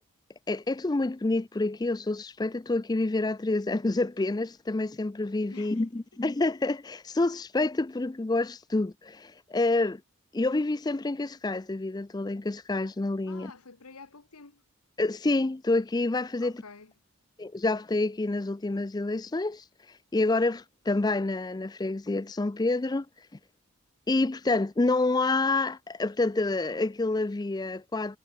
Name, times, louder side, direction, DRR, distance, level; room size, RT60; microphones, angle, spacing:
voice 1, 0.5-10.0 10.3-13.5 15.0-16.5 17.4-23.1 24.1-28.2, left 2 dB, 15° left, 0.4 m, -28 dB
voice 2, 5.5-5.9 13.3-14.6 16.4-16.9, left 4 dB, 80° left, 1.5 m, -49 dB
head